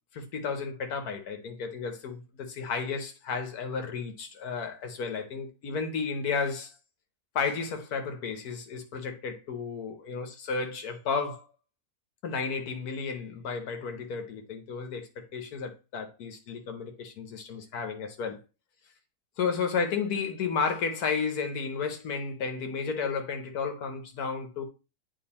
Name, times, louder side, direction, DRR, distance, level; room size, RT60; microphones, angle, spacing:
voice 1, 0.1-6.7 7.3-11.5 12.2-18.4 19.4-24.6, left 5 dB, 90° left, 1.5 m, -33 dB
8.8 x 3.3 x 4.2 m
omnidirectional pair, 1.5 m